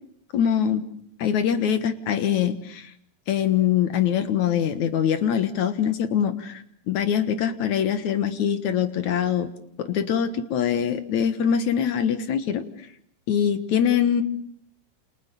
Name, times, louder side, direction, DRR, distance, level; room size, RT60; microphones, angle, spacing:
voice 1, 0.3-0.8 1.2-2.9 3.3-9.5 9.8-12.6 13.3-14.2, left 8 dB, 65° left, 11 dB, 2.5 m, -23 dB
28.5 x 27.5 x 7.1 m, 0.65 s
omnidirectional pair, 4.0 m